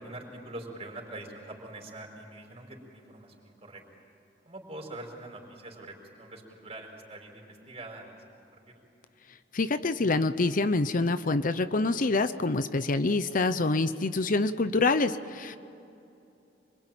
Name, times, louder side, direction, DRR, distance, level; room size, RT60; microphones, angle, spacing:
voice 1, 0.0-3.8 4.4-8.6, right 2 dB, 35° right, 1 dB, 5.1 m, -44 dB
voice 2, 9.5-15.6, left 3 dB, 50° left, 11 dB, 0.8 m, -26 dB
26.5 x 23.0 x 9.1 m, 2.8 s
head